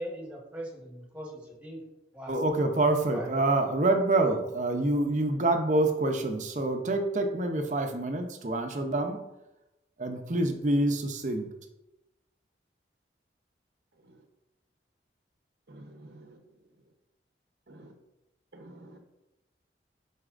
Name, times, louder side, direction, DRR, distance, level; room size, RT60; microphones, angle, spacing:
voice 1, 0.0-1.8 2.1-2.3 3.1-3.4, equal, 5° right, -2 dB, 1.2 m, -40 dB
voice 2, 2.3-9.2 10.0-11.5, right 2 dB, 40° right, 5 dB, 0.6 m, -26 dB
voice 3, 13.9-14.3 15.7-16.9 17.7-17.9 18.5-19.0, right 1 dB, 75° right, 5 dB, 0.8 m, -51 dB
9.7 x 4.2 x 2.5 m, 0.94 s
head